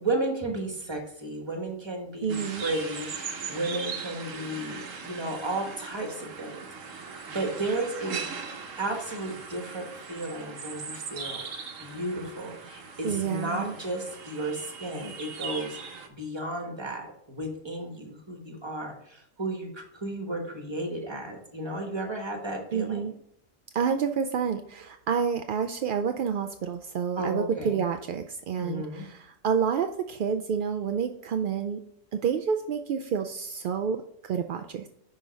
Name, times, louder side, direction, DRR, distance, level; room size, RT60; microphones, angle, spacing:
voice 1, 0.0-6.6 6.9-8.2 8.8-11.5 11.8-15.8 16.2-23.0 27.2-27.8 28.6-29.0, right 2 dB, 20° right, 3 dB, 1.4 m, -33 dB
voice 2, 2.2-2.6 13.0-13.7 22.7-23.1 23.7-28.8 29.4-31.8 32.2-34.9, right 7 dB, 65° right, 6 dB, 0.5 m, -28 dB
sound 1, 2.3-16.1, right 5 dB, 80° right, 1.4 m, -39 dB
10.5 x 3.9 x 5.2 m, 0.70 s
omnidirectional pair, 1.3 m